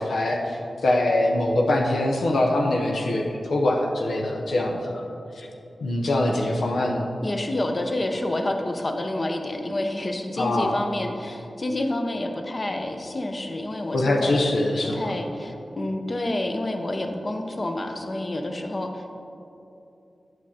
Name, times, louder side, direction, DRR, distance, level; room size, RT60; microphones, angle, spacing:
voice 1, 0.0-5.0 5.3-5.5 5.8-7.1 10.4-10.8 13.9-15.0, left 1 dB, 90° left, -1 dB, 0.8 m, -23 dB
voice 2, 7.2-14.5 14.8-19.1, left 1 dB, 35° left, 4 dB, 0.7 m, -29 dB
8.8 x 6.2 x 4.2 m, 2.7 s
wide cardioid pair, 105°, 0 cm